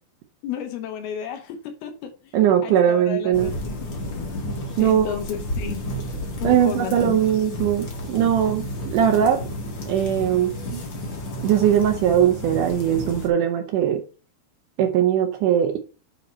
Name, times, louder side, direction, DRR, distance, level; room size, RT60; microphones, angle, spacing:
voice 1, 0.4-2.4 2.6-3.9 4.8-5.9 6.4-7.4, left 9 dB, 75° left, 2.8 m, -33 dB
voice 2, 2.3-3.5 4.8-5.2 6.4-9.4 9.9-10.8 11.4-14.0 14.8-15.8, right 9 dB, 80° right, 1.8 m, -20 dB
sound 1, 3.3-13.3, left 1 dB, 45° left, 1.7 m, -32 dB
9.1 x 4.3 x 4.4 m
omnidirectional pair, 4.7 m